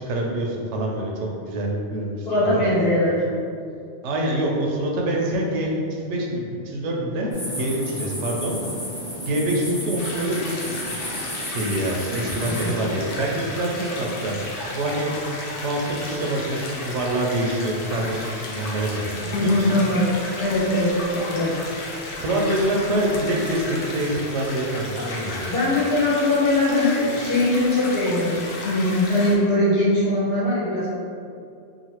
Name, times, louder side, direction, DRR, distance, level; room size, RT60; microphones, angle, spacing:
voice 1, 0.1-2.6 4.0-7.3 7.6-8.6 9.2-11.0 11.5-14.3 14.7-15.1 15.6-19.7 22.2-25.5, right 1 dB, 75° right, -1 dB, 0.9 m, -25 dB
voice 2, 2.2-3.3 12.5-12.7 19.2-21.6 25.5-30.9, left 1 dB, 60° left, -10 dB, 1.3 m, -21 dB
sound 1, 7.3-12.7, equal, 35° left, 0.9 m, -33 dB
sound 2, 10.0-29.4, left 2 dB, 90° left, 0.9 m, -34 dB
2.9 x 2.5 x 2.8 m, 2.4 s
omnidirectional pair, 1.2 m